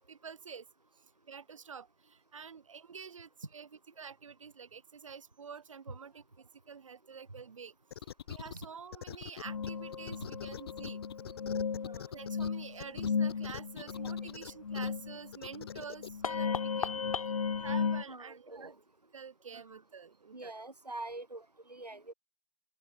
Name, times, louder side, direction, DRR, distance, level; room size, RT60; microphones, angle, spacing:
voice 1, 0.1-0.7 1.0-11.0 12.1-17.0 17.6-18.7 19.1-20.5, right 6 dB, 55° right, 2.0 m, -48 dB
sound 1, 7.9-8.6 8.9-12.5 12.8-14.9 15.3-16.1, left 9 dB, 40° left, 3.6 m, -43 dB
sound 2, 9.4-18.0, left 6 dB, 60° left, 0.9 m, -35 dB
voice 2, 16.5-16.9 18.1-18.8 20.3-22.1, right 2 dB, 85° right, 2.4 m, -45 dB
figure-of-eight pair, 140°, 20 cm